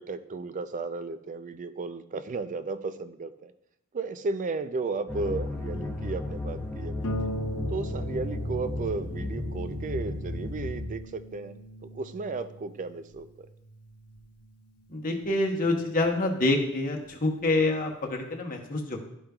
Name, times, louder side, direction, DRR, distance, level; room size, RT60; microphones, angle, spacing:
voice 1, 0.0-3.5 3.9-7.3 7.7-13.5, right 3 dB, 35° right, 11 dB, 0.4 m, -34 dB
sound 1, 5.1-10.8, left 2 dB, 5° left, 0.9 m, -34 dB
Harp, 7.0-16.2 17.1-17.2 17.6-17.7, right 1 dB, 70° left, 0.7 m, -40 dB
voice 2, 14.9-19.0, left 2 dB, 40° left, 1 dB, 1.0 m, -27 dB
12.0 x 5.1 x 2.3 m, 0.78 s
head